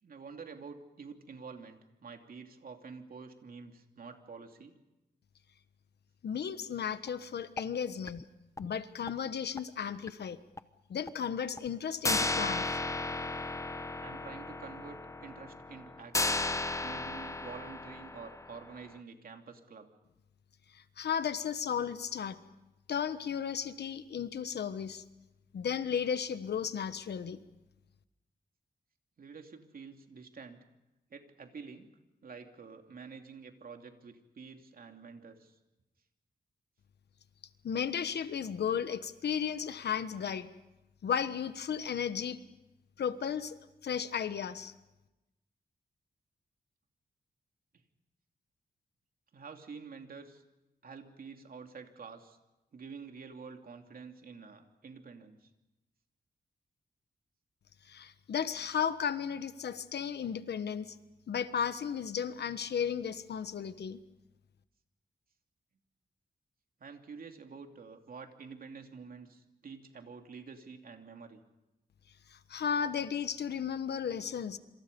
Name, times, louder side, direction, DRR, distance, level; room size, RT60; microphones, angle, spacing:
voice 1, 0.0-4.8 14.0-16.5 16.8-19.9 29.2-30.7 31.1-31.9 32.2-35.6 49.3-50.4 50.8-52.4 52.7-55.5 66.8-71.4, right 5 dB, 60° right, 5 dB, 2.8 m, -48 dB
voice 2, 6.2-8.2 8.6-10.4 10.9-12.8 20.7-22.4 22.9-25.0 25.5-27.4 37.6-40.5 41.0-42.4 43.0-43.6 43.8-44.7 57.8-61.0 61.3-64.0 72.3-74.6, left 7 dB, 80° left, 12 dB, 1.3 m, -34 dB
sound 1, 7.1-7.2 7.6-7.7 8.1-8.2 8.6-8.7 9.1-9.2 9.6-9.7 10.1-10.2 10.6-10.7 11.1-11.2 11.6-11.7 12.0-18.7, left 2 dB, 20° left, 0.9 m, -34 dB
27.0 x 26.5 x 5.4 m, 0.97 s
wide cardioid pair, 105°, 17 cm